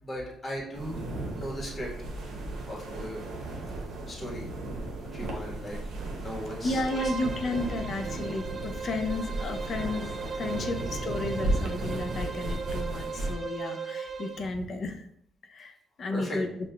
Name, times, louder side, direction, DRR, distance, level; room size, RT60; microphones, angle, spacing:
voice 1, 0.0-1.9 2.6-3.7 4.1-4.4 5.1-5.8 6.2-7.0 16.1-16.4, equal, 30° left, -3 dB, 1.2 m, -37 dB
sound 1, 0.7-13.3, right 2 dB, 80° right, 0.7 m, -35 dB
voice 2, 6.6-10.1 10.4-15.1 15.5-16.5, left 2 dB, 55° left, 6 dB, 0.5 m, -33 dB
Bowed string instrument, 6.8-14.5, right 5 dB, 40° right, 0.4 m, -37 dB
5.5 x 2.4 x 2.2 m, 0.73 s
cardioid pair, 90°, 0 cm